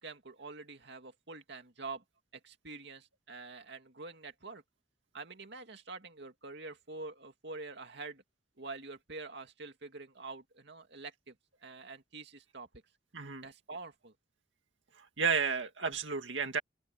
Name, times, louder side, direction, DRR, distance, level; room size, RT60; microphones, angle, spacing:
voice 1, 0.0-2.0 2.3-4.6 5.1-8.2 8.6-11.4 11.6-12.7 13.4-14.1, right 3 dB, 65° right, 2.5 m, -46 dB
voice 2, 13.1-13.5 15.0-16.6, right 6 dB, 85° right, 2.1 m, -32 dB
open air
head